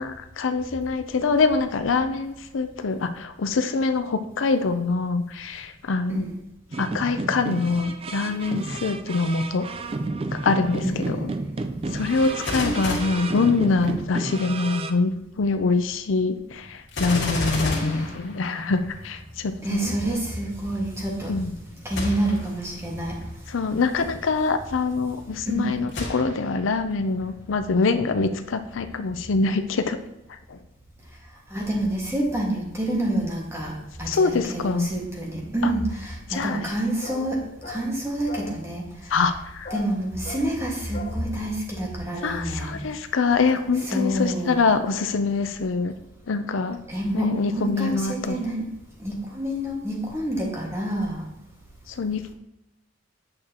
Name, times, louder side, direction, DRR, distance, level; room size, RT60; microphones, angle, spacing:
voice 1, 0.0-6.3 6.8-9.6 10.3-11.3 11.9-20.0 21.3-21.5 23.5-30.0 30.5-30.6 34.1-34.9 35.6-35.7 36.3-36.6 39.1-39.7 42.2-45.9 46.3-46.8 47.1-48.5 51.9-52.3, left 4 dB, 80° left, 8 dB, 0.6 m, -24 dB
sound 1, 6.7-14.9, right 3 dB, 30° right, 0.4 m, -32 dB
voice 2, 10.8-11.6 12.6-13.1 13.8-14.0 17.1-18.1 19.6-21.4 21.8-23.2 25.5-25.7 31.5-38.9 39.7-42.8 43.9-44.6 46.9-48.7 49.0-51.3, right 1 dB, 15° right, -2 dB, 1.7 m, -28 dB
Gunshot gunfire, 12.1-14.1 16.9-19.0 21.9-22.5 23.2-23.3 25.9-26.7 27.2-27.3, left 2 dB, 65° left, 2.0 m, -31 dB
sound 2, 37.0-37.3 37.6-37.9 38.3-38.6 39.6-39.9 40.2-40.5 40.9-41.2, left 3 dB, 40° left, 0.7 m, -37 dB
8.8 x 6.4 x 2.9 m, 0.91 s
head